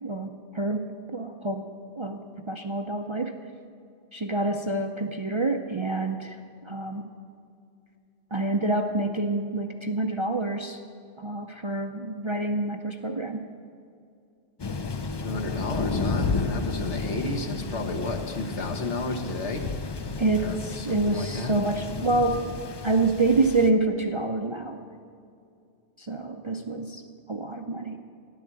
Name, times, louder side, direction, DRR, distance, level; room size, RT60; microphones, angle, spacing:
voice 1, 0.0-1.7 2.0-3.3 4.1-6.4 6.6-7.1 8.3-10.8 11.2-13.5 20.2-22.5 22.8-24.8 26.0-27.0 27.3-28.0, right 2 dB, 35° right, 4 dB, 0.5 m, -27 dB
Thunder, 14.6-23.7, left 4 dB, 40° left, 0.3 m, -32 dB
voice 2, 15.2-19.6 20.4-21.5, left 3 dB, 70° left, 4 dB, 1.6 m, -32 dB
12.5 x 11.0 x 7.5 m, 2.4 s
omnidirectional pair, 1.2 m